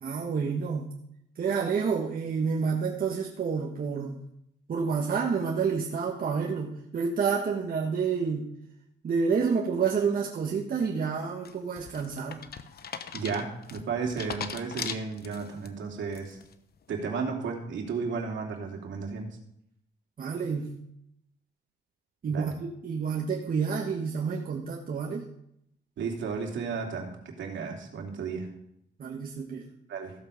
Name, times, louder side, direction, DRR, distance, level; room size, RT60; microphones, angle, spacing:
voice 1, 0.0-0.9 1.4-4.2 4.7-8.5 9.0-12.4 20.2-20.7 22.2-25.3 29.0-29.6, right 5 dB, 45° right, -1 dB, 1.6 m, -29 dB
sound 1, 11.4-15.7 16.1-16.5, left 7 dB, 50° left, 1.0 m, -39 dB
voice 2, 13.1-16.4 16.9-19.3 22.3-22.5 26.0-27.1 27.4-28.5 29.9-30.1, right 5 dB, 70° right, 1 dB, 2.9 m, -33 dB
15.0 x 7.7 x 5.2 m, 0.74 s
cardioid pair, 90°, 20 cm